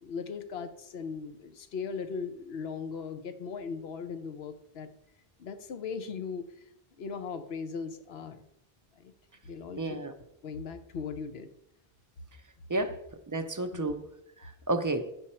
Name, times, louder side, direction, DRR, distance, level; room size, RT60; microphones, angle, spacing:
voice 1, 0.0-4.9 5.4-6.5 7.0-8.4 9.0-9.1 9.4-10.0 10.4-11.5 13.7-13.9, left 5 dB, 75° left, 9 dB, 1.0 m, -38 dB
voice 2, 9.8-10.1 12.7-13.0 13.3-14.0 14.4-15.1, right 2 dB, 25° right, 7 dB, 0.5 m, -31 dB
9.5 x 5.4 x 4.3 m, 0.82 s
omnidirectional pair, 1.0 m